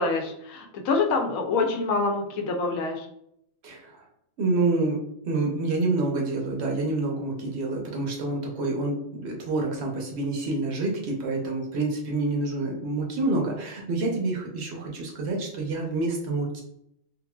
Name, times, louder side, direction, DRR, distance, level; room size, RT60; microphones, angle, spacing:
voice 1, 0.0-3.1, left 3 dB, 85° left, 3 dB, 1.1 m, -26 dB
voice 2, 3.6-4.0 4.4-16.6, right 2 dB, 55° right, 0 dB, 0.9 m, -28 dB
3.6 x 2.6 x 2.2 m, 0.75 s
omnidirectional pair, 1.4 m